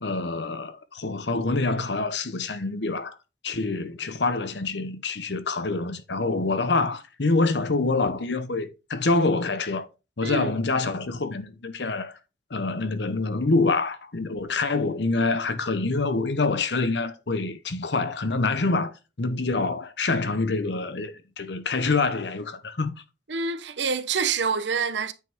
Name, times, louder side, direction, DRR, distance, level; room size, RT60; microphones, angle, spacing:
voice 1, 0.0-3.2 3.4-9.9 10.2-12.2 12.5-18.9 19.2-22.9, left 3 dB, 70° left, 1.0 m, -26 dB
voice 2, 10.2-10.5 23.3-25.1, right 5 dB, 75° right, 0.9 m, -26 dB
9.3 x 5.7 x 3.6 m
head